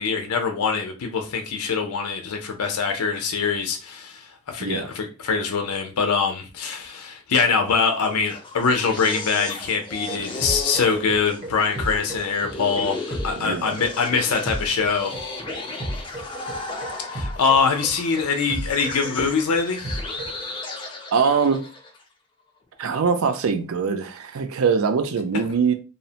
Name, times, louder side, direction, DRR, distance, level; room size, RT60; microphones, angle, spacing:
voice 1, 0.0-15.2 17.1-19.9, left 5 dB, 80° left, 0.5 m, -23 dB
voice 2, 4.6-4.9 13.4-13.8 21.1-21.6 22.8-25.7, right 5 dB, 70° right, 0.4 m, -22 dB
sound 1, 7.9-22.0, left 3 dB, 20° left, 0.4 m, -36 dB
sound 2, 9.7-20.4, right 1 dB, 30° right, 0.7 m, -33 dB
2.7 x 2.0 x 2.7 m
head